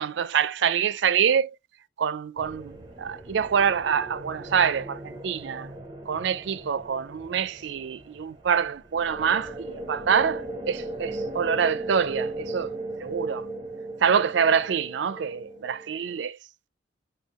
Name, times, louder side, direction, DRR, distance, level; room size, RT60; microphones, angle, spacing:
voice 1, 0.0-1.6 2.0-5.7 6.1-12.7 13.0-13.5 14.0-16.4, right 7 dB, 65° right, 0.4 m, -26 dB
sound 1, 2.4-16.2, right 1 dB, 20° right, 0.6 m, -37 dB
5.6 x 2.3 x 2.9 m
head